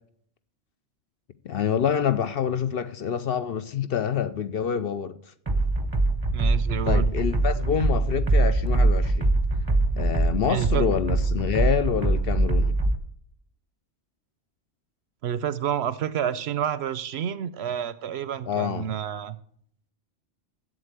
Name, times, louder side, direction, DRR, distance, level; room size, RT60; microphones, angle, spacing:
voice 1, 1.4-5.1 6.8-9.3 10.0-12.8 18.4-18.9, left 8 dB, 60° left, 0.7 m, -27 dB
sound 1, 5.5-13.0, right 2 dB, 20° right, 0.8 m, -23 dB
voice 2, 6.3-7.1 10.5-11.2 15.2-19.4, right 9 dB, 65° right, 0.8 m, -29 dB
7.9 x 7.9 x 8.0 m
omnidirectional pair, 1.3 m